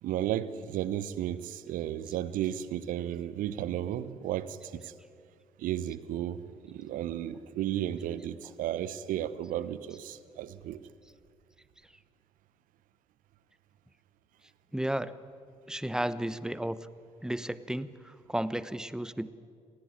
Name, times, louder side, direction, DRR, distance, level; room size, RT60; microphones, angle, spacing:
voice 1, 0.0-4.9 5.6-10.8, right 11 dB, 60° right, 16 dB, 1.1 m, -34 dB
voice 2, 14.7-15.1 15.7-16.8 17.2-19.3, right 1 dB, 5° right, 16 dB, 1.1 m, -33 dB
27.5 x 19.5 x 9.9 m, 2.3 s
figure-of-eight pair, 45°, 16 cm